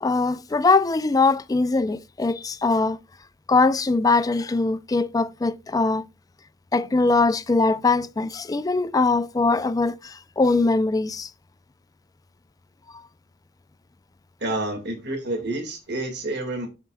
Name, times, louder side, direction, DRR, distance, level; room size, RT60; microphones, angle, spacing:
voice 1, 0.0-3.0 3.5-6.0 6.7-11.3, left 3 dB, 20° left, 0.3 m, -21 dB
voice 2, 14.4-16.7, right 2 dB, 60° right, 1.9 m, -29 dB
11.0 x 4.5 x 2.2 m
head